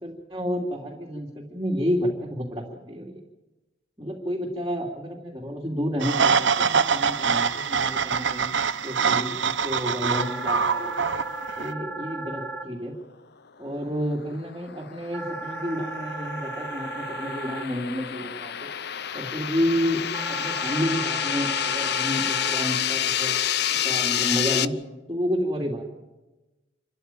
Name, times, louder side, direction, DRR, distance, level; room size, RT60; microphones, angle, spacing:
voice 1, 0.0-3.2 4.0-8.5 8.8-10.9 11.6-12.9 13.6-18.7 19.1-20.0 20.3-23.4 23.8-24.7 25.1-25.8, equal, 20° right, -2 dB, 2.8 m, -30 dB
sound 1, 6.0-11.7, right 6 dB, 65° right, 0.9 m, -24 dB
sound 2, 10.1-12.6 15.1-17.6 20.1-22.6, right 3 dB, 5° left, 2.9 m, -35 dB
sound 3, 14.2-24.7, left 10 dB, 60° left, 0.7 m, -29 dB
27.5 x 14.0 x 9.1 m, 1.1 s
head